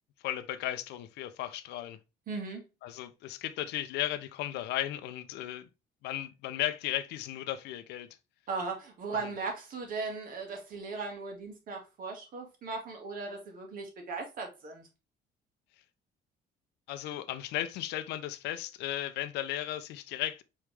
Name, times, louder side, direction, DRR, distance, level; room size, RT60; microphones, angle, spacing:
voice 1, 0.2-2.0 2.8-5.7 6.0-8.1 9.1-9.3 16.9-20.4, left 13 dB, 85° left, 0.6 m, -35 dB
voice 2, 2.3-2.6 8.5-14.9, right 4 dB, 55° right, 1.7 m, -38 dB
4.9 x 3.2 x 3.2 m
cardioid pair, 110°, 17 cm